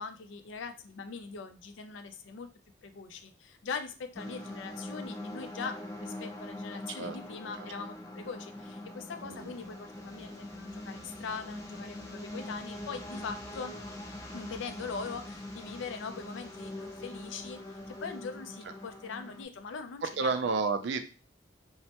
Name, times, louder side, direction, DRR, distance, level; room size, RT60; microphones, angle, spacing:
voice 1, 0.0-2.5 2.8-13.7 14.3-20.6, left 5 dB, 80° left, 8 dB, 0.4 m, -41 dB
sound 1, 4.1-19.4, left 1 dB, 15° left, 0.4 m, -43 dB
voice 2, 20.0-21.0, right 4 dB, 65° right, 8 dB, 0.4 m, -31 dB
3.1 x 2.1 x 2.8 m, 0.34 s
head